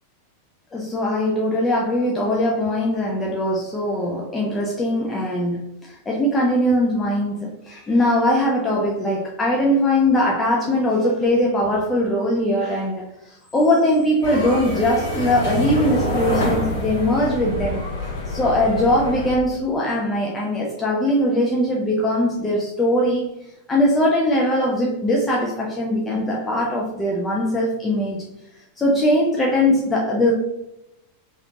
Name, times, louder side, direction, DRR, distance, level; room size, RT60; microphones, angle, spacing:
voice 1, 0.7-17.8 18.3-23.3 23.7-28.2 28.8-30.3, left 1 dB, 15° left, -2 dB, 0.5 m, -21 dB
sound 1, 14.2-19.4, left 1 dB, 55° left, 1.0 m, -26 dB
3.3 x 2.8 x 2.3 m, 0.87 s
figure-of-eight pair, 90°, 0 cm